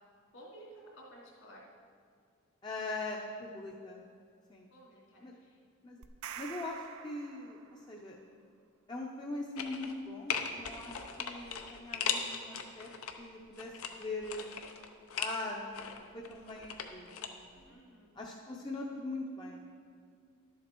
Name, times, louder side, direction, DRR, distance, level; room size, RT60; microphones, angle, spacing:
voice 1, 0.3-1.6 4.7-5.6 17.7-18.2, right 1 dB, 65° left, -4 dB, 2.9 m, -54 dB
voice 2, 2.6-4.0 4.5-4.7 5.2-5.4 5.8-6.0 6.4-8.2 8.9-12.9 13.2-14.5 15.2-17.7 18.1-19.6, left 2 dB, 20° left, -1 dB, 0.6 m, -41 dB
sound 1, 6.0-8.0, right 8 dB, 80° right, 0.5 m, -47 dB
sound 2, 9.6-10.0 10.3-13.1 13.6-15.4 15.7-17.3 17.6-17.7, left 7 dB, 85° left, 0.8 m, -38 dB
12.0 x 7.4 x 4.5 m, 2.3 s
head